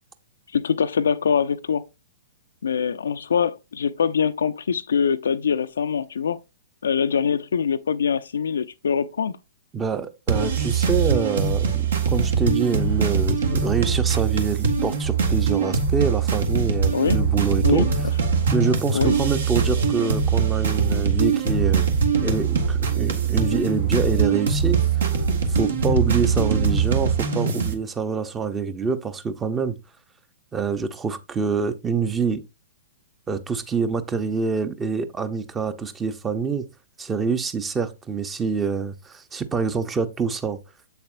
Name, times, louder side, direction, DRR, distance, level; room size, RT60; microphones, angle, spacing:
voice 1, 0.5-1.9 2.6-6.4 6.8-9.4 16.9-17.2 17.6-17.9 18.9-19.2, left 7 dB, 65° left, 0.4 m, -23 dB
voice 2, 9.7-17.9 18.5-21.8 22.2-25.2 25.5-29.8 30.5-32.4 33.3-36.7 37.0-40.6, right 5 dB, 15° right, 0.8 m, -26 dB
sound 1, 10.3-27.7, right 6 dB, 60° right, 1.5 m, -22 dB
7.8 x 6.8 x 2.6 m
figure-of-eight pair, 110°, 0 cm